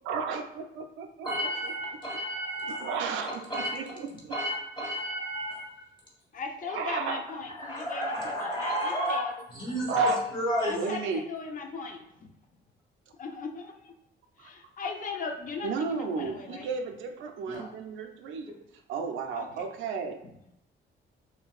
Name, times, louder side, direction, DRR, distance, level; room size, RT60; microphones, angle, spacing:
voice 1, 0.0-1.7 2.6-4.4 6.7-7.2 9.9-10.2 10.8-11.2 14.4-14.5 15.6-18.5 18.9-20.2, right 5 dB, 80° right, 5 dB, 0.4 m, -34 dB
voice 2, 1.2-3.1 3.5-3.7 4.3-5.7 7.6-9.2 9.5-10.7 17.4-17.6, equal, 25° left, -5 dB, 1.3 m, -31 dB
voice 3, 6.3-9.3 9.6-9.8 10.6-12.3 13.2-13.9 14.4-16.7 19.3-19.6 20.2-20.3, left 4 dB, 45° left, 3 dB, 0.5 m, -38 dB
2.5 x 2.1 x 2.3 m, 0.83 s
cardioid pair, 90°, 20 cm